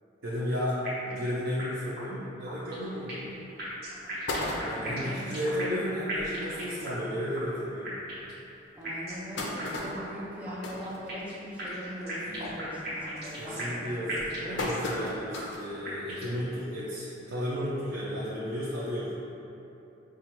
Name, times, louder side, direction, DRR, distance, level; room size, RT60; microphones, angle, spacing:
voice 1, 0.2-0.8 1.1-3.4 4.6-8.0 12.2-12.6 13.4-19.1, equal, 80° right, -7 dB, 0.5 m, -33 dB
sound 1, 0.8-1.3 1.6-1.7 2.0-2.1 2.5-3.3 3.6-5.8 6.1-7.1 7.3-7.4 7.8-8.4 8.8-9.3 9.6-9.7 10.0-10.1 10.4-11.3 11.6-13.8 14.1-15.1 15.3-15.4 15.8-16.4, right 1 dB, 55° right, 1.0 m, -37 dB
sound 2, 3.1-3.2 3.7-3.8 4.0-5.1 5.7-5.8 6.0-6.1 6.5-6.6 7.3-7.4 8.0-8.1 8.8-11.6 12.0-12.3 12.7-13.1 13.7-15.7 16.2-16.3 17.4-17.5, left 2 dB, 80° left, 0.5 m, -36 dB
voice 2, 4.7-5.5 8.8-14.3, equal, 10° right, -7 dB, 0.5 m, -41 dB
4.9 x 2.3 x 2.9 m, 2.9 s
head